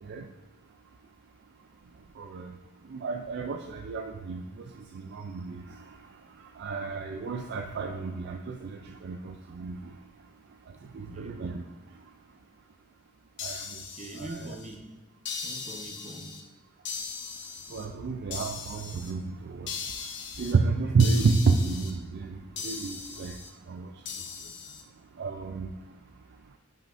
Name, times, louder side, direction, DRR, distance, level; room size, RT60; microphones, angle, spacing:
voice 1, 2.2-2.5 2.9-4.4 4.8-6.0 6.6-9.8 10.9-11.6 13.4-13.7 14.2-14.4 17.7-19.9 20.4-23.4 23.7-23.9 25.2-25.7, right 4 dB, 50° right, 4 dB, 0.4 m, -30 dB
voice 2, 10.8-11.6 13.9-15.0 15.4-16.4 20.0-20.1, right 1 dB, 30° right, 3 dB, 0.8 m, -44 dB
sound 1, 13.4-14.7 15.3-16.4 16.9-17.9 18.3-19.1 19.7-20.5 21.0-21.9 22.6-23.5 24.1-24.8, left 5 dB, 55° left, 0.8 m, -38 dB
10.5 x 5.6 x 2.5 m, 1.1 s
head